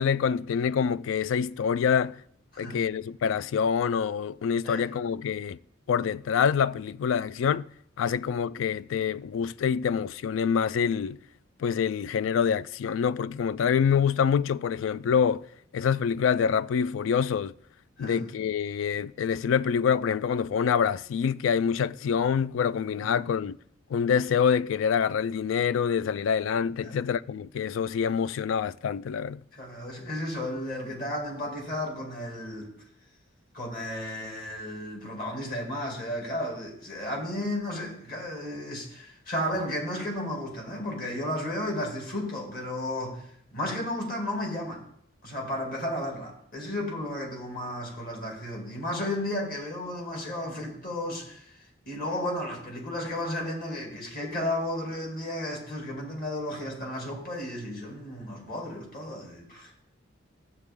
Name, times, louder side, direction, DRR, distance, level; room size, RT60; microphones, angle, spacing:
voice 1, 0.0-2.2 2.6-5.6 5.9-7.7 8.0-11.2 11.6-15.4 15.7-17.5 18.0-23.6 23.9-29.4, left 7 dB, 85° left, 0.3 m, -26 dB
voice 2, 18.0-18.3 23.0-23.2 26.8-27.0 29.5-32.7 33.5-44.8 45.2-51.6 51.9-59.7, left 1 dB, 50° left, 2.4 m, -33 dB
12.5 x 7.5 x 3.6 m
head